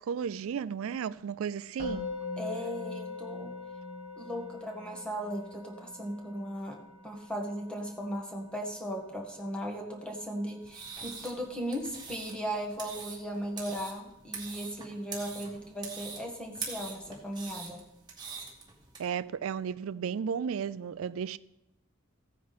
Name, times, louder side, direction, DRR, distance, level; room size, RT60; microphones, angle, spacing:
voice 1, 0.0-2.1 19.0-21.4, right 7 dB, 80° right, 0.4 m, -34 dB
Musical instrument, 1.8-12.9, left 3 dB, 30° left, 2.6 m, -44 dB
voice 2, 2.4-3.5 4.2-6.8 7.0-17.8, equal, 5° left, 1.7 m, -37 dB
sound 1, 10.6-19.0, right 5 dB, 20° right, 2.2 m, -43 dB
15.5 x 9.4 x 4.2 m
head